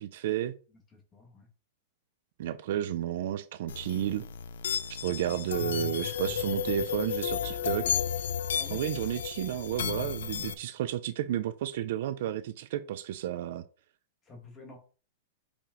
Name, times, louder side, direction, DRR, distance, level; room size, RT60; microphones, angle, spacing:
voice 1, 0.0-0.5 2.4-4.2 5.0-8.0 8.7-13.6, right 11 dB, 50° right, 0.5 m, -32 dB
voice 2, 0.7-1.5 8.5-8.8 14.2-14.8, left 2 dB, 15° left, 1.5 m, -50 dB
sound 1, 3.7-10.5, left 8 dB, 70° left, 0.6 m, -33 dB
5.1 x 5.1 x 3.8 m
supercardioid pair, 175°, 0 cm